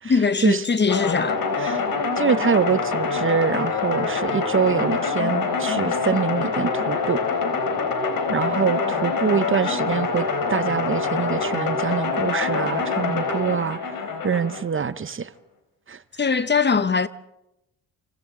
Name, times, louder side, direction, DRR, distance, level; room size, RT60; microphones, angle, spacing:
voice 1, 0.0-1.4 16.2-17.1, left 5 dB, 30° left, 0.9 m, -21 dB
sound 1, 0.9-14.6, left 5 dB, 65° left, 3.8 m, -25 dB
voice 2, 2.2-7.2 8.3-13.9 14.2-15.3 15.9-16.0, right 6 dB, 35° right, 0.8 m, -24 dB
28.0 x 26.0 x 3.8 m
cardioid pair, 80°, 37 cm